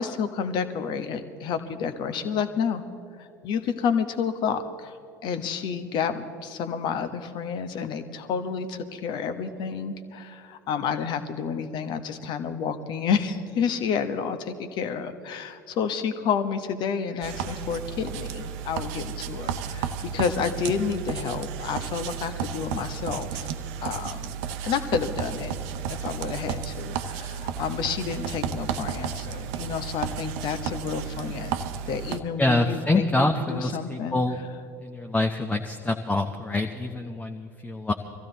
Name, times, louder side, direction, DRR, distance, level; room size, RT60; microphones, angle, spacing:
voice 1, 0.0-2.8 3.2-5.0 5.2-23.5 23.8-24.3 24.6-25.6 25.9-31.6 31.9-33.1 33.4-34.6, left 6 dB, 50° left, 10 dB, 1.1 m, -30 dB
sound 1, 17.2-32.2, right 8 dB, 60° right, 0.8 m, -33 dB
voice 2, 32.4-34.4 34.8-37.9, left 2 dB, 15° left, 3 dB, 0.9 m, -25 dB
22.5 x 15.0 x 4.0 m, 2.4 s
figure-of-eight pair, 70°, 10 cm